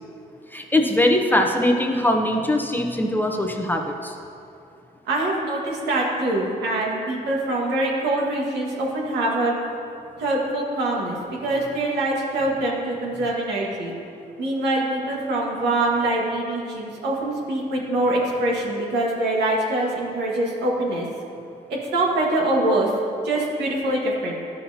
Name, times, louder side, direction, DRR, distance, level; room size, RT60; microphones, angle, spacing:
voice 1, 0.5-4.2, left 1 dB, 10° left, 2 dB, 0.7 m, -21 dB
voice 2, 5.0-9.5 10.2-13.9 14.4-21.1 21.7-22.9 23.2-24.4, right 1 dB, 80° right, -3 dB, 1.6 m, -24 dB
11.5 x 5.7 x 2.8 m, 2.6 s
cardioid pair, 80°, 17 cm